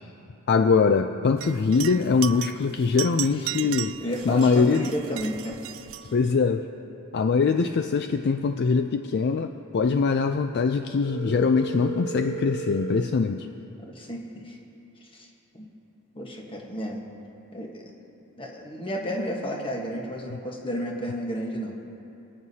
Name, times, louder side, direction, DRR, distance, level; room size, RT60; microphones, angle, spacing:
voice 1, 0.5-3.9 4.3-4.9 6.1-6.7 7.1-13.5, left 5 dB, 50° left, 7 dB, 0.4 m, -22 dB
sound 1, 1.4-6.3, right 14 dB, 60° right, 0.3 m, -36 dB
voice 2, 4.0-5.6 6.0-6.1 13.8-14.6 15.1-15.3 15.5-15.7 16.1-17.0 17.5-17.9 18.4-21.7, equal, 25° left, 0 dB, 1.3 m, -32 dB
Telephone, 11.0-13.0, right 5 dB, 70° left, 1.0 m, -34 dB
27.5 x 9.4 x 2.8 m, 2.9 s
head